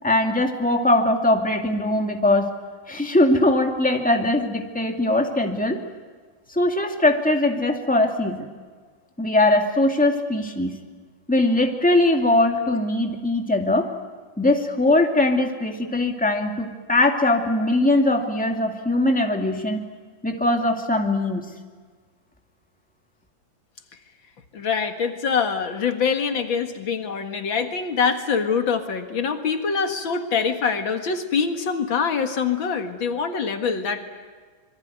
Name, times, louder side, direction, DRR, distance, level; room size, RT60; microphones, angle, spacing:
voice 1, 0.0-2.5 2.9-5.8 6.5-8.5 9.2-10.8 11.3-13.9 14.4-19.9 20.2-21.5, left 2 dB, 5° left, 3 dB, 2.2 m, -21 dB
voice 2, 24.5-34.1, left 6 dB, 85° left, 6 dB, 2.6 m, -24 dB
26.5 x 23.0 x 9.4 m, 1.6 s
omnidirectional pair, 2.1 m